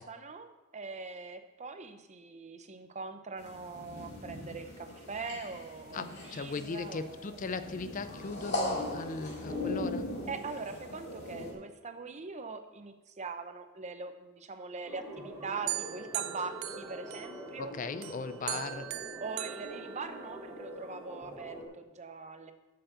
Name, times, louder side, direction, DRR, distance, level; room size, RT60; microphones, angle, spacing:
voice 1, 0.0-7.3 10.3-17.7 18.5-18.6 19.2-22.5, right 4 dB, 35° right, 8 dB, 0.8 m, -42 dB
sound 1, 3.4-11.5, left 1 dB, 55° left, 2.3 m, -39 dB
voice 2, 5.9-10.1 17.6-18.8, left 4 dB, 40° left, 11 dB, 0.5 m, -38 dB
sound 2, 14.8-21.6, right 1 dB, 15° right, 3.1 m, -45 dB
sound 3, 15.7-17.6 18.0-20.6, right 15 dB, 85° right, 0.4 m, -40 dB
7.5 x 6.8 x 6.8 m, 1.1 s
head